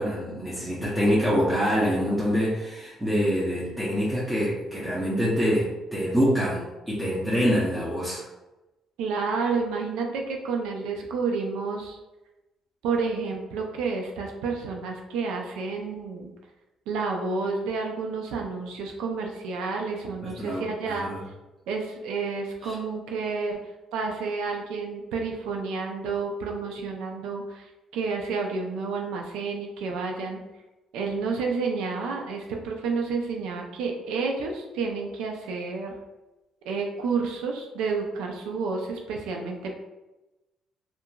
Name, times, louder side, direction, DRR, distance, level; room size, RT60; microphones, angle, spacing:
voice 1, 0.0-8.2 20.2-21.2 22.6-22.7, equal, 10° right, -7 dB, 0.7 m, -25 dB
voice 2, 9.0-12.0 12.8-16.3 16.9-21.1 21.7-30.4 30.9-35.9 36.7-39.7, right 4 dB, 85° right, 1 dB, 0.4 m, -30 dB
2.7 x 2.5 x 2.3 m, 1.0 s
cardioid pair, 80°, 0 cm